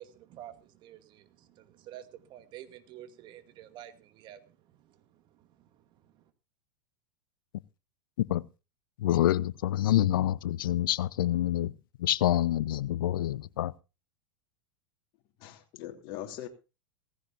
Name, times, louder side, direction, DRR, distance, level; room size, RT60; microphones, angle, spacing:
voice 1, 0.0-6.3, right 11 dB, 40° right, 2.2 m, -50 dB
voice 2, 9.0-11.7 12.0-13.7, left 13 dB, 70° left, 0.7 m, -27 dB
voice 3, 15.4-16.5, left 13 dB, 50° left, 3.3 m, -41 dB
18.0 x 15.5 x 2.6 m
hypercardioid pair, 100°, 12 cm